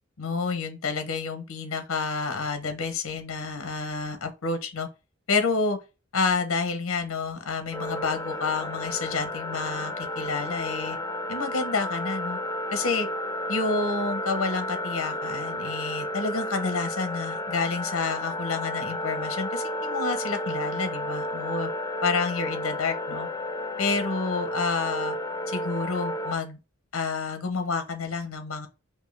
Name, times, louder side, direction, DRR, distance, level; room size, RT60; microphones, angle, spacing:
voice 1, 0.2-4.9 5.3-5.8 6.1-11.0 11.3-12.4 12.7-13.1 13.5-21.7 22.0-23.3 23.8-25.2 25.5-26.6 26.9-28.7, left 4 dB, 80° left, 0.8 m, -29 dB
sound 1, 7.7-26.3, left 1 dB, 20° left, 0.5 m, -32 dB
4.5 x 2.8 x 3.2 m
head